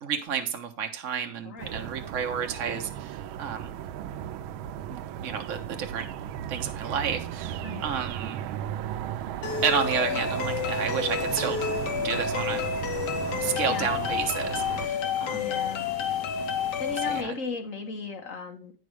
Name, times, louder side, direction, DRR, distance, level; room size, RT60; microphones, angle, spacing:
voice 1, 0.0-3.8 4.9-6.1 6.5-8.4 9.6-11.7 12.0-12.7 13.4-15.4 17.1-17.3, right 7 dB, 45° right, 4 dB, 1.3 m, -31 dB
voice 2, 1.4-1.9 7.6-8.0 13.7-13.9 15.3-15.9 16.8-18.7, left 3 dB, 40° left, 3 dB, 1.8 m, -36 dB
sound 1, 1.6-14.9, right 10 dB, 90° right, 1.4 m, -36 dB
sound 2, 9.4-17.2, left 7 dB, 65° left, 1.5 m, -29 dB
9.5 x 5.3 x 4.8 m, 0.37 s
omnidirectional pair, 2.1 m